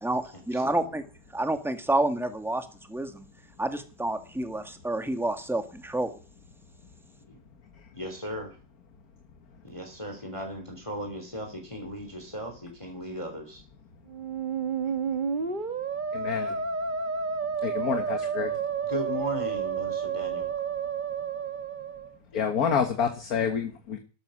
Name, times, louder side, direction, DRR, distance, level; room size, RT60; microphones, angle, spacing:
voice 1, 0.0-1.0 1.3-3.3 3.6-6.1, right 2 dB, ahead, 7 dB, 1.6 m, -29 dB
voice 2, 0.5-0.9 7.3-7.4 7.9-8.6 9.6-13.6 14.8-14.9 18.8-20.5, equal, 15° left, 3 dB, 2.9 m, -37 dB
Musical instrument, 14.1-22.1, right 6 dB, 30° right, 1.2 m, -31 dB
voice 3, 16.1-16.6 17.6-18.5 22.3-24.0, left 7 dB, 55° left, 6 dB, 1.9 m, -28 dB
13.0 x 13.0 x 6.3 m, 0.37 s
omnidirectional pair, 1.9 m